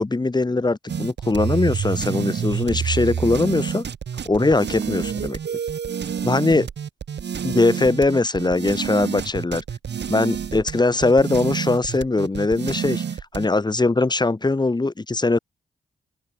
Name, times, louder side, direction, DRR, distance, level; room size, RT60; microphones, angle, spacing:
voice 1, 0.0-3.9 4.2-5.4 6.2-6.7 7.4-9.6 10.1-13.0 13.3-15.4, left 3 dB, 25° left, 1.6 m, -21 dB
sound 1, 0.9-13.5, right 7 dB, 70° right, 5.1 m, -28 dB
open air
cardioid pair, 65°, 18 cm